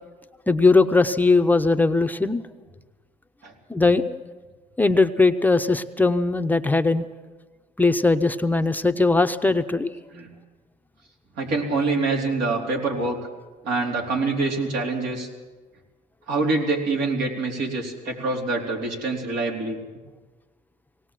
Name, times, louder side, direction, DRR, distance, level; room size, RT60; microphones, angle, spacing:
voice 1, 0.5-2.4 3.7-4.2 4.8-7.0 7.8-9.9, left 3 dB, 10° left, 8 dB, 0.7 m, -19 dB
voice 2, 11.4-13.2 13.6-15.3 16.3-19.8, right 3 dB, 80° right, 0 dB, 4.1 m, -25 dB
19.0 x 18.0 x 7.5 m, 1.3 s
cardioid pair, 110°, 17 cm